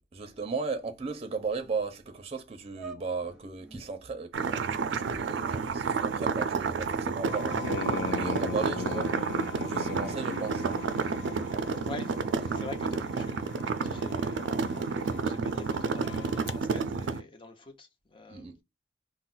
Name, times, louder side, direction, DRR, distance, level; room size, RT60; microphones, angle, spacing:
voice 1, 0.0-10.6 18.3-18.6, right 4 dB, 35° right, 0.5 m, -36 dB
sound 1, 2.2-2.3 2.7-3.9 4.5-8.0 8.3-9.0 9.6-11.6, right 1 dB, 5° right, 0.8 m, -49 dB
sound 2, 4.3-17.2, right 5 dB, 90° right, 0.3 m, -30 dB
sound 3, 7.2-16.6, left 7 dB, 70° left, 0.3 m, -40 dB
voice 2, 11.9-14.9 15.2-18.5, left 2 dB, 30° left, 0.6 m, -46 dB
2.3 x 2.0 x 3.8 m
head